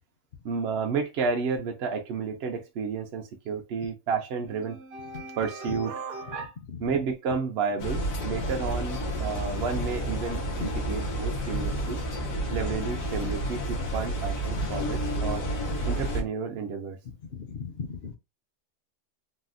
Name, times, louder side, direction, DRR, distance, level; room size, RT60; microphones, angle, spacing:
voice 1, 0.4-12.1 12.5-15.5 15.8-17.0, right 5 dB, 60° right, 0.7 m, -31 dB
sound 1, 7.8-16.2, right 1 dB, 85° left, 1.5 m, -30 dB
voice 2, 17.3-18.2, left 5 dB, 55° left, 0.8 m, -36 dB
4.0 x 2.0 x 2.5 m
omnidirectional pair, 1.4 m